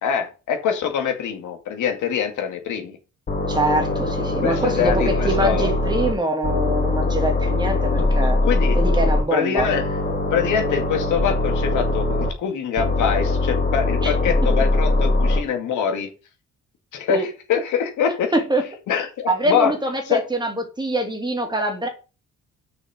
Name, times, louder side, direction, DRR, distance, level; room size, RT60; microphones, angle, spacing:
voice 1, 0.0-3.0 4.4-5.7 8.5-8.8 9.3-10.0 10.3-16.1 16.9-18.3 18.9-19.7 20.1-20.2, left 7 dB, 80° left, 2.2 m, -24 dB
sound 1, 3.3-6.1 6.4-9.2 9.6-12.3 12.8-15.4, left 2 dB, 30° left, 3.2 m, -21 dB
voice 2, 3.5-8.4 8.7-9.7 14.0-14.1 17.1-17.3 18.3-18.6 19.3-21.9, right 1 dB, 15° right, 2.6 m, -24 dB
6.2 x 5.9 x 6.4 m
cardioid pair, 90°, 30 cm